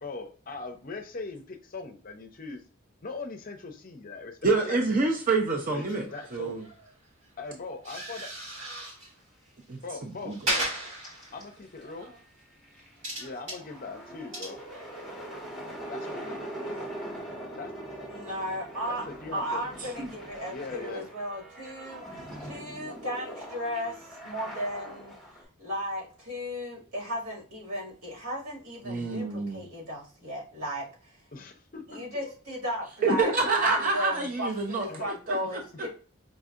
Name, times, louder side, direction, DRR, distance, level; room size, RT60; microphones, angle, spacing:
voice 1, 0.0-2.6 3.0-5.0 5.7-6.6 7.4-8.3 9.8-10.7 11.3-12.1 13.2-14.6 15.9-16.4 17.6-17.7 18.9-19.6 20.5-21.1 31.3-32.3 34.8-35.1 35.4-35.5, left 3 dB, 40° left, 6 dB, 0.5 m, -40 dB
voice 2, 4.4-6.1 6.3-6.7 9.7-10.4 19.8-20.1 28.8-29.6 33.0-34.9 35.3-35.6, right 3 dB, 40° right, 1 dB, 0.5 m, -27 dB
sound 1, 5.5-7.3 7.6-9.2 9.5-9.9 10.2-12.2 12.7-16.2, right 1 dB, 65° right, 1.9 m, -37 dB
sound 2, 10.3-10.4 10.7-11.4 11.9-12.0 12.2-25.4, right 1 dB, ahead, 1.4 m, -42 dB
voice 3, 18.1-19.1 19.3-23.9 24.2-25.1 25.6-30.9 31.9-33.3 33.6-35.9, equal, 90° right, -4 dB, 2.0 m, -35 dB
5.0 x 2.7 x 2.4 m, 0.39 s
head